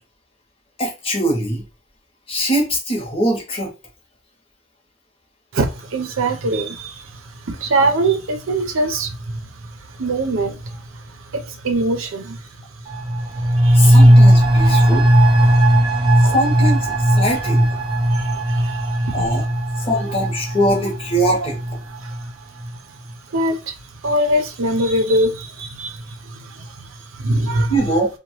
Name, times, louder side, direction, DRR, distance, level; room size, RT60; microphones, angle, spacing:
voice 1, 0.8-1.6 2.3-3.7 13.7-15.1 16.3-17.7 19.1-19.4 19.8-21.6 27.7-28.1, right 1 dB, 30° left, 0.9 m, -21 dB
voice 2, 5.5-14.2 14.7-14.9 15.4-16.4 16.9-17.0 17.3-17.4 17.8-19.5 19.8-20.2 21.8-28.1, right 1 dB, 85° right, 0.6 m, -24 dB
sound 1, 12.9-22.3 22.6-22.7, right 1 dB, 20° right, 0.4 m, -16 dB
2.8 x 2.2 x 2.9 m
head